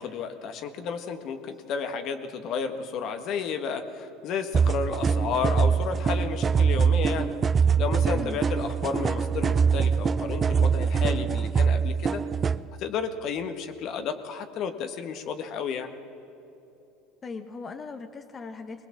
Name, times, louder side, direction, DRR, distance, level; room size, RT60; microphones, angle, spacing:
voice 1, 0.0-7.3 7.8-12.2 12.8-15.9, left 6 dB, 55° left, 7 dB, 1.6 m, -32 dB
sound 1, 4.5-12.6, right 6 dB, 30° right, 0.5 m, -24 dB
voice 2, 17.2-18.9, left 4 dB, 30° left, 7 dB, 1.2 m, -39 dB
21.0 x 20.0 x 7.5 m, 2.9 s
hypercardioid pair, 85°, 0 cm